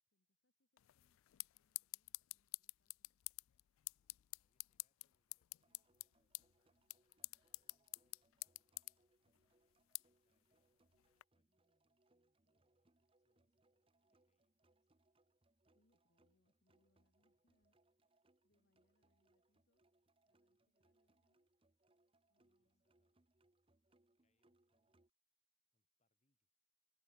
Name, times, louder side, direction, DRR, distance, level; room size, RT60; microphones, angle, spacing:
voice 1, 0.0-3.2 15.7-17.8 18.0-19.9 20.2-21.5 22.3-22.8, left 1 dB, 60° left, 2.0 m, -86 dB
sound 1, 0.8-11.2, left 23 dB, 85° left, 0.3 m, -52 dB
voice 2, 3.7-8.8 9.2-11.0 11.3-15.0 20.3-20.7 22.4-23.3 24.2-25.2 25.7-26.7, left 1 dB, 35° left, 5.5 m, -93 dB
sound 2, 5.6-25.1, right 2 dB, 25° right, 1.0 m, -79 dB
head